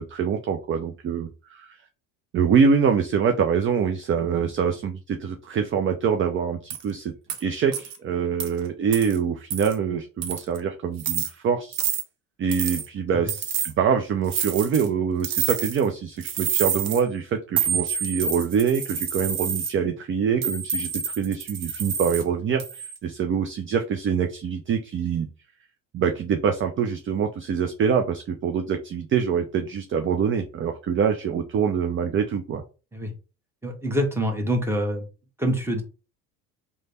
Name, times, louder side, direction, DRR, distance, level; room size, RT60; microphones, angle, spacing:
voice 1, 0.0-1.8 2.3-7.1 7.4-11.8 12.4-25.3 25.9-32.6, right 6 dB, 30° right, 6 dB, 0.5 m, -25 dB
sound 1, 6.7-6.8 7.3-7.4 7.7-8.0 8.4-8.5 8.9-9.2 9.5-9.7 10.2-10.6 11.0-11.3 11.7-12.0 12.5-12.9 13.3-13.7 14.3-14.9 15.2-15.9 16.2-17.0 17.6-19.7 20.4-22.2 22.6-23.0, right 7 dB, 55° right, 1.0 m, -28 dB
voice 2, 33.6-35.0 35.4-35.8, equal, 5° right, 2 dB, 1.2 m, -25 dB
3.2 x 2.2 x 4.1 m, 0.33 s
hypercardioid pair, 70°, 40 cm